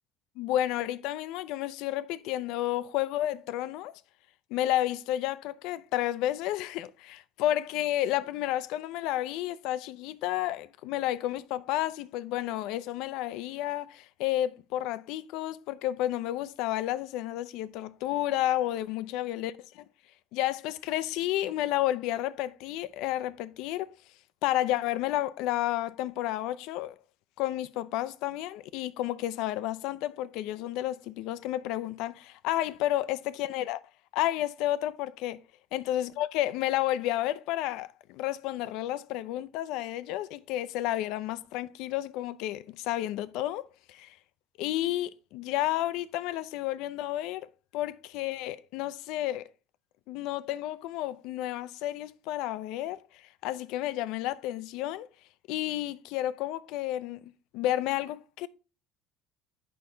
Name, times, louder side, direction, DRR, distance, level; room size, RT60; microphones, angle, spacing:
voice 1, 0.4-3.9 4.5-19.8 20.3-23.9 24.4-26.9 27.4-33.8 34.1-35.4 35.7-44.2 44.6-49.5 50.1-55.1 55.5-57.2 57.5-58.5, left 14 dB, 70° left, 0.5 m, -31 dB
8.6 x 5.8 x 3.8 m
cardioid pair, 140°, 0 cm